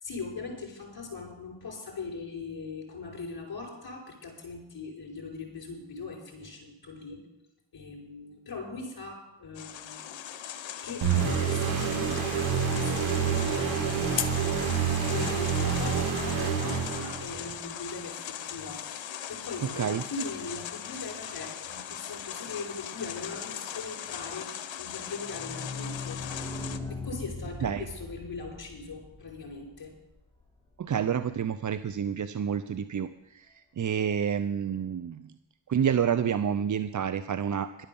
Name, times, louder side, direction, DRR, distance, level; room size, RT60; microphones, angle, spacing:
voice 1, 0.0-7.2 7.7-10.0 10.8-14.0 15.1-18.8 19.3-26.2 26.9-29.9, left 3 dB, 50° left, 0 dB, 5.2 m, -40 dB
sound 1, 9.5-26.8, left 10 dB, 70° left, 1.1 m, -39 dB
sound 2, 11.0-17.5, right 6 dB, 70° right, 3.5 m, -28 dB
sound 3, 24.9-30.4 30.7-30.8 31.0-31.1 31.4-31.5, left 3 dB, 10° left, 3.6 m, -40 dB
voice 2, 30.8-35.3 35.7-37.9, right 8 dB, 40° right, 12 dB, 0.7 m, -29 dB
11.5 x 8.8 x 7.1 m, 0.95 s
supercardioid pair, 50°, 48 cm